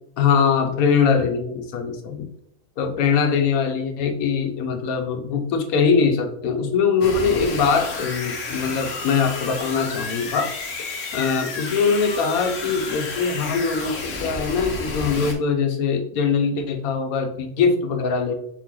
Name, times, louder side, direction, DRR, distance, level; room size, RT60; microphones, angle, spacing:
voice 1, 0.2-2.3 2.8-10.5 10.9-18.3, left 5 dB, 90° left, 5 dB, 1.2 m, -22 dB
sound 1, 7.0-15.3, left 3 dB, 65° left, 1.1 m, -31 dB
4.4 x 3.7 x 3.0 m, 0.73 s
omnidirectional pair, 1.5 m